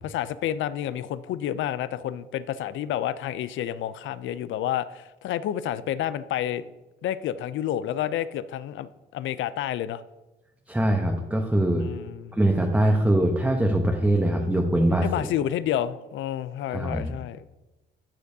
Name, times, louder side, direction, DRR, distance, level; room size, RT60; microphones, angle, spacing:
voice 1, 0.0-6.6 7.0-10.0 11.8-12.4 15.0-17.5, left 11 dB, 75° left, 16 dB, 0.4 m, -29 dB
voice 2, 10.7-11.8 12.3-15.1 16.7-17.1, right 1 dB, 5° right, 1 dB, 0.8 m, -22 dB
11.5 x 6.6 x 2.7 m, 1.1 s
cardioid pair, 90°, 20 cm